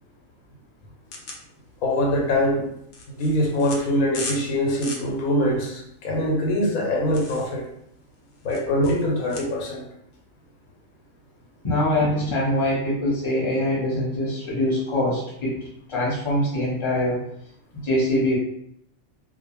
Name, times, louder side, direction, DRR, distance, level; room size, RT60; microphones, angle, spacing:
sound 1, 1.1-9.4, left 3 dB, 65° left, 0.8 m, -39 dB
voice 1, 1.8-2.7 3.1-7.7 8.4-9.9, left 1 dB, 85° left, 0 dB, 1.1 m, -23 dB
voice 2, 11.6-15.5 15.9-17.2 17.8-18.4, left 1 dB, 25° left, -7 dB, 0.9 m, -23 dB
2.4 x 2.0 x 3.0 m, 0.74 s
omnidirectional pair, 1.5 m